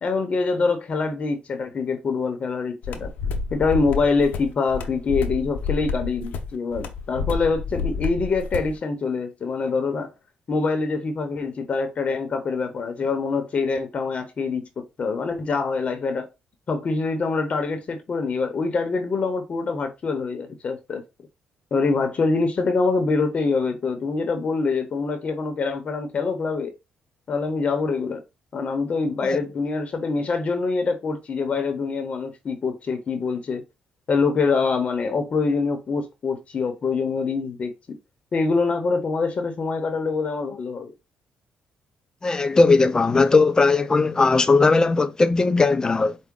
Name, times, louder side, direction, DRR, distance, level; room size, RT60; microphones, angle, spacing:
voice 1, 0.0-3.1 3.5-10.1 10.5-16.3 16.7-21.0 21.7-26.7 27.3-28.2 28.5-33.6 34.1-38.0 38.3-40.9, left 4 dB, 45° left, 0.8 m, -25 dB
sound 1, 2.8-8.8, left 4 dB, 80° left, 0.7 m, -29 dB
voice 2, 42.2-46.2, left 3 dB, 25° left, 0.4 m, -18 dB
4.6 x 2.1 x 3.7 m
cardioid pair, 90°, 3 cm